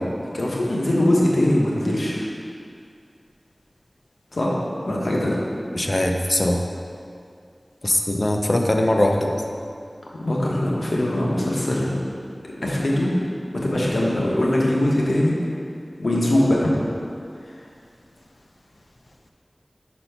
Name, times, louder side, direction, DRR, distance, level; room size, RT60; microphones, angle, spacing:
voice 1, 0.3-2.3 4.3-4.5 4.8-5.4 10.2-11.9 12.6-13.1 13.6-15.3 16.0-16.7, left 1 dB, 80° left, -4 dB, 1.1 m, -21 dB
voice 2, 5.7-6.6 7.8-9.4, left 1 dB, 45° left, 3 dB, 0.6 m, -21 dB
5.6 x 4.3 x 5.4 m, 2.3 s
wide cardioid pair, 45°, 0 cm